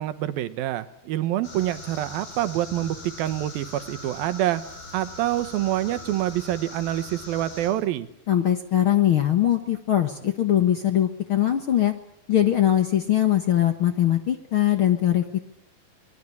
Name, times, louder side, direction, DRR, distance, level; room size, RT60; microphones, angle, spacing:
voice 1, 0.0-4.6 4.9-8.1, right 13 dB, 90° right, 12 dB, 3.0 m, -26 dB
sound 1, 1.4-7.7, left 2 dB, 80° left, 9.3 m, -41 dB
voice 2, 8.3-11.9 12.3-15.4, left 11 dB, 55° left, 7 dB, 1.5 m, -21 dB
24.5 x 20.5 x 8.5 m, 0.69 s
omnidirectional pair, 4.1 m